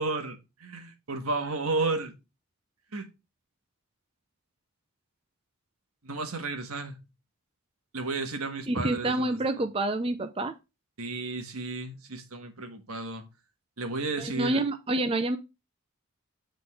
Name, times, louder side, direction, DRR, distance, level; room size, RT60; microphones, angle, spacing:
voice 1, 0.0-2.1 2.9-3.1 6.0-7.0 7.9-9.4 11.0-13.2 13.8-14.6, right 3 dB, 85° right, 1.5 m, -32 dB
voice 2, 8.7-10.6 14.2-15.4, right 2 dB, 25° right, 0.5 m, -28 dB
7.8 x 3.9 x 4.8 m
head